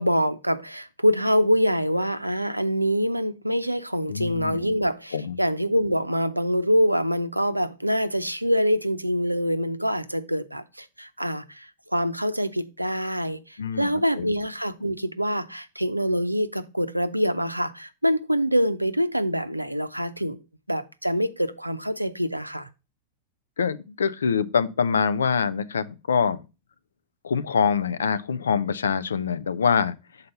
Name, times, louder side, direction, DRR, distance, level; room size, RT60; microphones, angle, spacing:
voice 1, 0.0-20.4 20.7-22.7, equal, 90° right, 0.5 m, -25 dB
voice 2, 4.1-4.7 5.1-5.4 13.6-14.3 23.6-26.4 27.2-29.9, left 6 dB, 70° left, 0.5 m, -25 dB
6.5 x 4.0 x 5.4 m
figure-of-eight pair, 90°, 0 cm